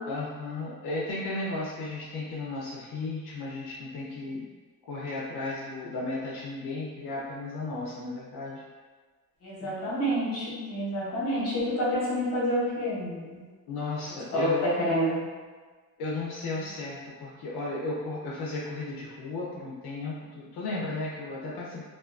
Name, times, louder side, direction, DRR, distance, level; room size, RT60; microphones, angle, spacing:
voice 1, 0.1-4.5 4.9-8.6 13.7-14.7 16.0-21.8, left 2 dB, 80° left, -5 dB, 0.6 m, -34 dB
voice 2, 9.4-13.4 14.3-15.2, equal, 40° left, -7 dB, 0.9 m, -28 dB
2.4 x 2.3 x 2.4 m, 1.4 s
cardioid pair, 170°, 38 cm